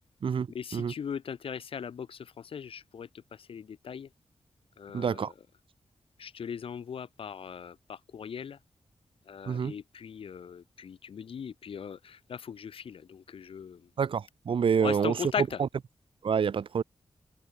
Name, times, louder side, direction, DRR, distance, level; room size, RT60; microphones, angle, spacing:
voice 1, 0.5-3.1 3.5-4.1 4.8-5.3 6.2-8.6 9.3-13.8 14.8-15.6, left 7 dB, 70° left, 1.3 m, -39 dB
voice 2, 4.9-5.3 9.5-9.7 14.0-15.2 15.6-15.7 16.2-16.8, right 6 dB, 65° right, 2.1 m, -27 dB
wide cardioid pair, 170°, 10 cm